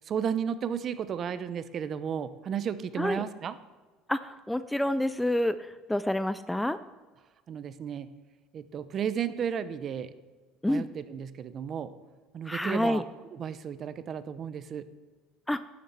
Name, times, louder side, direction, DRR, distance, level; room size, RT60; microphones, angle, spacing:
voice 1, 0.1-3.5 7.5-8.1 8.5-10.1 10.7-11.9 12.3-13.0 13.3-14.9, right 8 dB, 40° right, 14 dB, 0.7 m, -33 dB
voice 2, 4.1-6.8 10.6-10.9 12.5-13.0 15.5-15.6, left 1 dB, 5° left, 13 dB, 0.3 m, -28 dB
11.5 x 7.2 x 8.0 m, 1.3 s
cardioid pair, 130°, 0 cm